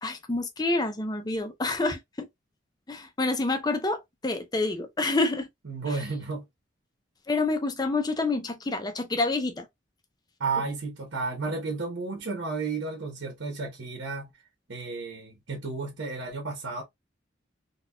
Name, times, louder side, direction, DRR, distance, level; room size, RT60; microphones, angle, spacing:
voice 1, 0.0-2.3 2.9-5.5 5.9-6.0 7.3-9.7, left 2 dB, 20° left, 0.5 m, -28 dB
voice 2, 5.6-6.4 10.4-14.3 14.7-16.8, right 4 dB, 90° right, 1.0 m, -32 dB
4.0 x 2.3 x 2.2 m
head